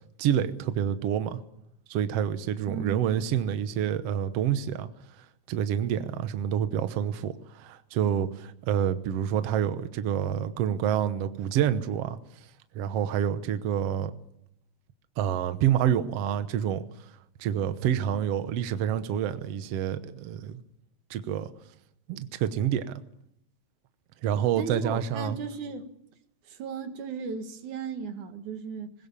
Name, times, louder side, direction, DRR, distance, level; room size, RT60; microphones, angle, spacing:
voice 1, 0.0-1.4 1.9-4.9 5.2-12.5 12.7-14.1 15.2-17.1 17.4-20.6 21.1-21.5 22.1-22.9 24.2-25.4, right 9 dB, 65° right, 1.9 m, -28 dB
voice 2, 2.7-3.0 24.6-25.9 26.4-28.9, right 5 dB, 90° right, 3.1 m, -36 dB
21.0 x 19.5 x 7.2 m
omnidirectional pair, 3.3 m